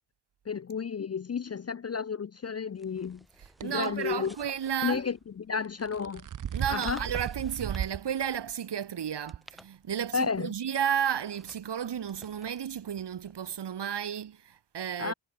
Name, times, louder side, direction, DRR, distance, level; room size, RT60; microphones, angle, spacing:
voice 1, 0.5-3.2 3.6-4.4 4.8-6.2 6.7-7.0 10.1-10.5 15.0-15.1, left 6 dB, 35° left, 0.4 m, -32 dB
sound 1, 2.7-5.5 6.3-8.6 9.1-10.2 10.8-13.7, equal, ahead, 0.7 m, -54 dB
sound 2, 3.4-3.7 5.6-8.0 8.5-8.6 9.3-9.4, right 9 dB, 40° right, 0.5 m, -35 dB
voice 2, 3.6-5.0 6.5-15.1, right 9 dB, 60° right, 1.0 m, -32 dB
wide cardioid pair, 130°, 48 cm